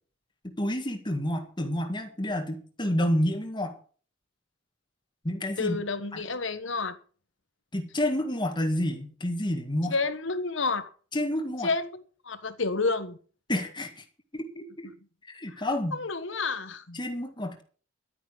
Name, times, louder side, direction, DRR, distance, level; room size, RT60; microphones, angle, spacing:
voice 1, 0.4-3.8 5.2-5.8 7.7-9.9 11.1-11.7 13.5-14.0 14.3-14.9 15.3-16.0 16.9-17.6, left 1 dB, 25° left, 1.9 m, -29 dB
voice 2, 5.6-7.0 9.9-10.9 11.6-13.2 15.5-15.6 15.9-17.0, left 3 dB, 65° left, 1.3 m, -30 dB
12.0 x 9.5 x 6.3 m
head